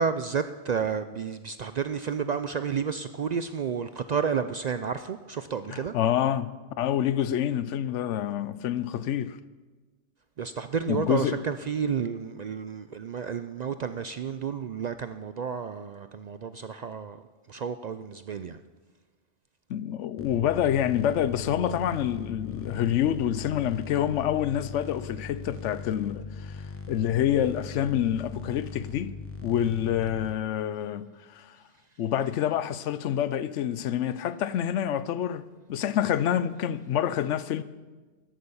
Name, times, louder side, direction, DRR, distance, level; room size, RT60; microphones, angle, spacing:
voice 1, 0.0-5.9 10.4-17.2 17.5-18.6, right 6 dB, 70° right, 0.4 m, -31 dB
voice 2, 5.7-9.4 10.9-11.4 19.7-31.6 32.0-37.6, left 10 dB, 80° left, 0.9 m, -27 dB
sound 1, 20.2-30.3, left 4 dB, 15° left, 0.8 m, -40 dB
13.5 x 11.5 x 5.5 m
omnidirectional pair, 1.2 m